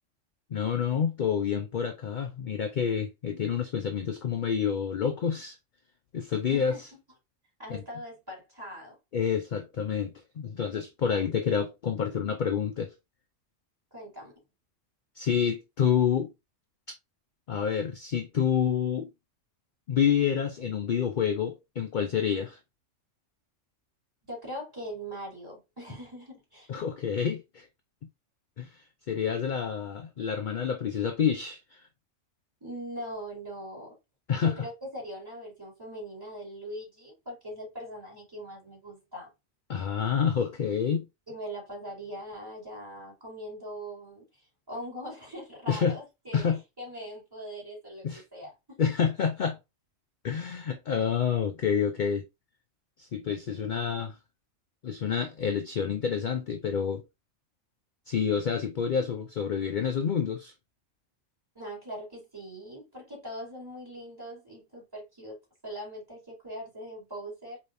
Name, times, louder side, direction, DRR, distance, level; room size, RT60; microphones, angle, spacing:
voice 1, 0.5-5.6 6.1-6.9 7.7-7.8 9.1-12.9 15.2-16.3 17.5-19.1 19.9-22.6 26.7-27.7 28.6-31.8 34.3-34.5 39.7-41.1 45.7-46.0 46.3-46.6 48.0-48.2 48.8-49.6 50.2-52.2 53.0-54.2 54.8-57.0 58.1-60.5, left 7 dB, 55° left, 0.5 m, -28 dB
voice 2, 6.5-6.8 7.6-9.0 13.9-14.3 24.3-26.7 32.6-34.0 34.3-39.3 41.3-44.2 44.7-46.5 46.8-48.8 61.5-65.4 65.6-67.6, equal, 15° right, 3.1 m, -41 dB
5.0 x 3.1 x 2.6 m
omnidirectional pair, 1.3 m